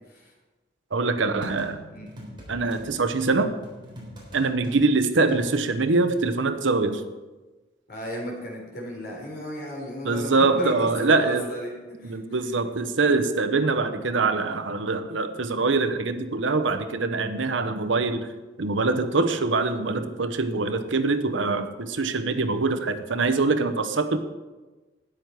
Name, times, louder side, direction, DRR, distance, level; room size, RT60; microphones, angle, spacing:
voice 1, 0.9-1.8 2.5-3.5 4.3-7.0 10.0-11.5 12.0-18.3 18.6-24.2, right 3 dB, 85° right, 9 dB, 0.9 m, -24 dB
sound 1, 1.4-2.8 3.2-6.3, equal, 25° right, 3.6 m, -42 dB
voice 2, 7.9-12.2 15.1-15.4 22.3-22.6, equal, 55° left, -1 dB, 4.0 m, -35 dB
13.0 x 9.7 x 4.6 m, 1.2 s
head